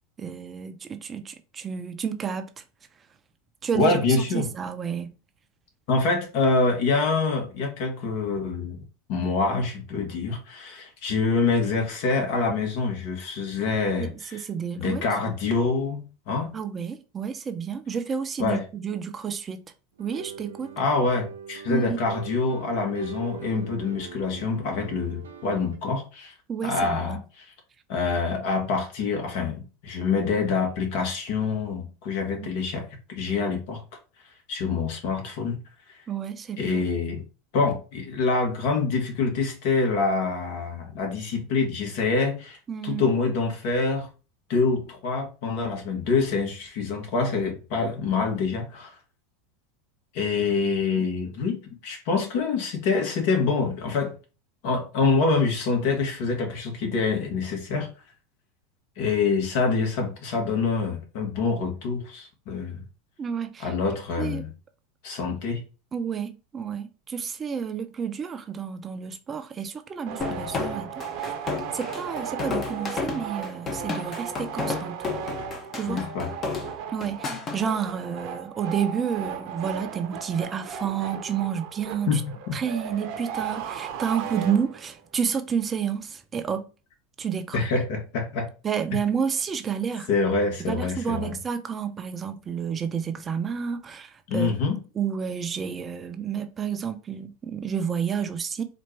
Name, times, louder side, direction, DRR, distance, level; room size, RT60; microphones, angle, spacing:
voice 1, 0.2-2.6 3.6-5.1 14.0-15.0 16.5-19.6 20.0-20.7 21.7-22.0 26.5-27.2 32.3-32.5 36.1-36.8 42.7-43.1 50.9-51.1 63.2-63.7 64.2-64.4 65.9-71.3 71.7-75.0 75.7-76.0 76.9-82.2 82.5-86.7 87.2-87.7 88.6-90.1 90.6-94.5 94.9-98.6, right 7 dB, 25° right, 0.5 m, -30 dB
voice 2, 3.7-4.5 5.9-8.8 9.1-14.4 14.7-16.5 18.4-18.6 20.8-26.3 26.6-27.2 27.9-33.8 34.5-35.6 36.6-37.2 37.5-42.6 42.8-44.1 44.5-49.0 50.1-54.2 54.6-57.9 59.0-62.8 63.6-64.5 65.0-65.6 75.9-76.3 82.1-82.2 82.5-82.6 87.5-88.5 90.1-91.4 94.3-94.8, left 4 dB, 65° left, 1.4 m, -26 dB
sound 1, 20.0-25.8, right 7 dB, 90° right, 0.7 m, -41 dB
sound 2, 70.1-85.0, right 8 dB, 60° right, 0.8 m, -36 dB
sound 3, 70.2-77.6, left 4 dB, 30° left, 0.9 m, -32 dB
4.3 x 2.5 x 3.2 m
hypercardioid pair, 100°, 0 cm